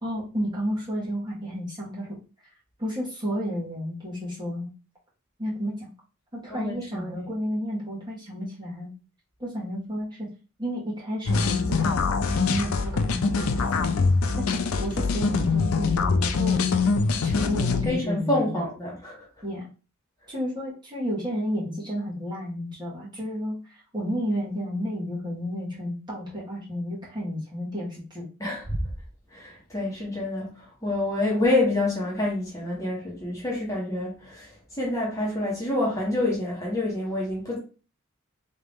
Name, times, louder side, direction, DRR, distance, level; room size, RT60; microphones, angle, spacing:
voice 1, 0.0-2.2 2.8-4.7 5.4-5.9 6.3-8.9 9.4-10.3 10.6-14.0 14.4-16.6 17.2-18.6 19.4-19.7 20.3-28.2, equal, 20° right, 1.5 m, -32 dB
voice 2, 6.5-7.2 17.8-19.2 28.4-28.6 29.3-37.6, left 2 dB, 15° left, 1.2 m, -27 dB
sound 1, 11.3-17.9, left 4 dB, 90° left, 0.5 m, -24 dB
3.6 x 2.7 x 3.5 m
head